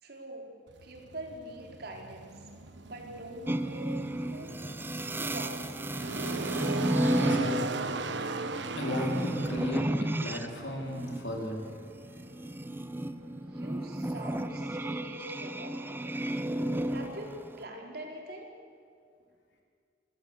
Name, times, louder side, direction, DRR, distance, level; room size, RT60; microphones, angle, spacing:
voice 1, 0.0-0.5 0.8-2.3 2.8-3.9 4.3-4.6 5.2-5.8 13.4-16.0 16.8-18.5, right 1 dB, 60° right, 2 dB, 3.8 m, -44 dB
sound 1, 0.7-15.1, right 3 dB, 80° right, 1.1 m, -39 dB
sound 2, 3.5-10.5 10.8-17.6, right 1 dB, 10° right, 0.7 m, -33 dB
voice 2, 7.2-7.8 8.8-11.6, left 1 dB, 75° left, 0 dB, 4.6 m, -35 dB
27.0 x 15.0 x 8.2 m, 2.2 s
head